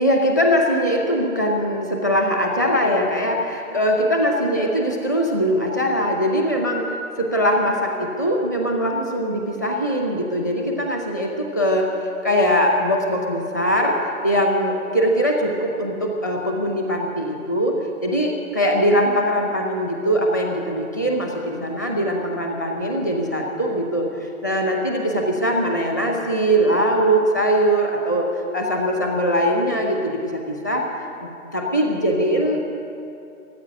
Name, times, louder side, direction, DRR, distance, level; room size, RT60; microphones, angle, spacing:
voice 1, 0.0-11.9 12.2-17.8 18.0-24.1 24.4-28.3 28.5-30.8 31.2-32.6, equal, 15° left, 1 dB, 0.6 m, -21 dB
14.5 x 8.5 x 9.8 m, 2.7 s
hypercardioid pair, 160°, 45 cm